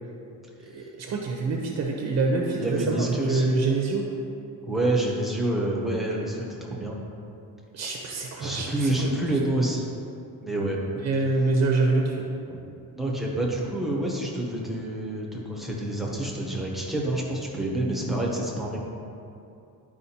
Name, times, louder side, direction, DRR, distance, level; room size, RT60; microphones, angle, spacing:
voice 1, 0.6-4.1 7.7-9.2 11.0-12.2, right 3 dB, 45° right, 0 dB, 0.7 m, -26 dB
voice 2, 2.6-3.7 4.7-7.0 8.4-9.9 10.4-10.8 12.5-12.6 12.9-18.8, right 1 dB, ahead, -3 dB, 0.8 m, -28 dB
11.5 x 5.0 x 2.8 m, 2.7 s
cardioid pair, 170°, 38 cm